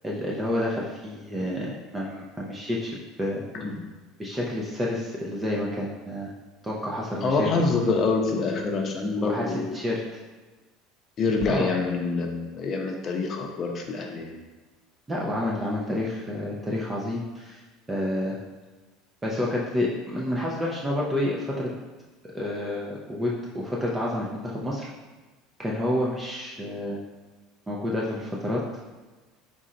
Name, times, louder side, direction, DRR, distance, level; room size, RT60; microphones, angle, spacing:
voice 1, 0.0-3.4 4.2-6.3 6.6-7.5 9.2-9.4 9.7-10.2 11.5-11.7 15.1-17.6 17.9-18.4 19.2-21.7 22.3-24.9 25.6-27.0 27.7-28.6, left 1 dB, 15° right, -4 dB, 0.6 m, -29 dB
voice 2, 7.2-9.8 11.2-14.3, left 4 dB, 40° left, 2 dB, 0.7 m, -26 dB
3.7 x 2.6 x 4.3 m, 1.2 s
supercardioid pair, 115°, 0 cm